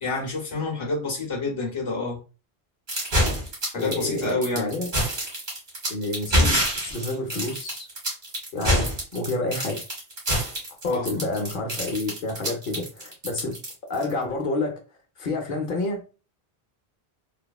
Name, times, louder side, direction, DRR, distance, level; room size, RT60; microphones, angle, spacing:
voice 1, 0.0-2.2 3.7-4.7 10.9-11.1, left 3 dB, 30° left, 1.0 m, -28 dB
sound 1, 2.9-14.1, equal, 50° right, 1.3 m, -26 dB
voice 2, 3.7-4.9 5.9-7.9 8.5-9.8 10.8-13.6 13.8-14.8 15.2-16.0, left 2 dB, 60° left, 0.8 m, -29 dB
3.3 x 2.0 x 2.3 m
omnidirectional pair, 1.0 m